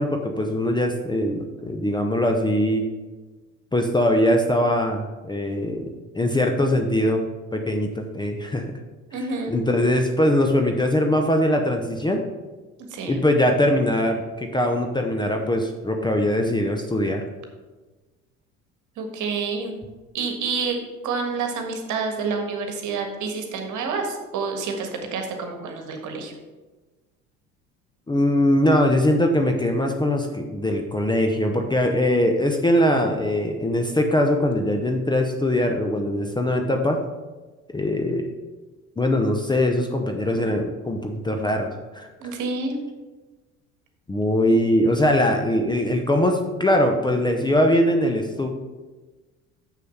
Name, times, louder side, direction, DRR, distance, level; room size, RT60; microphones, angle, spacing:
voice 1, 0.0-2.8 3.7-5.9 6.1-8.6 9.5-12.2 13.1-17.2 28.1-37.0 37.7-38.3 39.0-42.3 44.1-48.5, left 1 dB, 10° left, 3 dB, 0.8 m, -21 dB
voice 2, 9.1-9.5 12.9-13.2 19.0-19.7 20.1-26.3 42.2-42.7, right 4 dB, 45° right, 4 dB, 1.5 m, -28 dB
6.6 x 6.6 x 5.5 m, 1.3 s
figure-of-eight pair, 60°, 40 cm